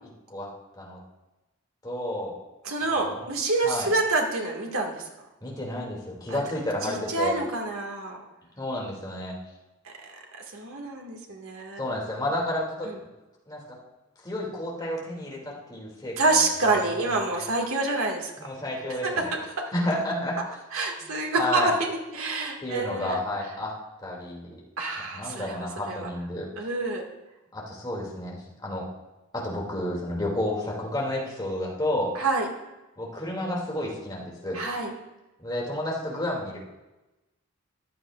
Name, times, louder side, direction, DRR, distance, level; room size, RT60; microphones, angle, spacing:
voice 1, 1.8-2.3 3.1-3.2 3.6-3.9 5.4-7.4 8.6-9.3 11.8-13.1 13.5-13.8 14.2-17.5 18.4-19.3 19.7-20.4 21.0-21.1 21.4-21.7 22.6-23.7 24.0-24.6 25.1-26.5 27.5-28.8 29.3-32.1 33.0-34.6 35.4-36.6, left 1 dB, 20° left, -4 dB, 2.6 m, -31 dB
voice 2, 2.6-5.0 6.3-6.4 6.8-8.2 10.5-11.8 16.2-18.3 19.0-19.2 20.7-23.2 24.8-26.1 26.6-27.0 32.2-32.5 34.5-34.9, right 3 dB, 85° right, 1 dB, 2.1 m, -27 dB
14.5 x 11.0 x 2.5 m, 1.0 s
head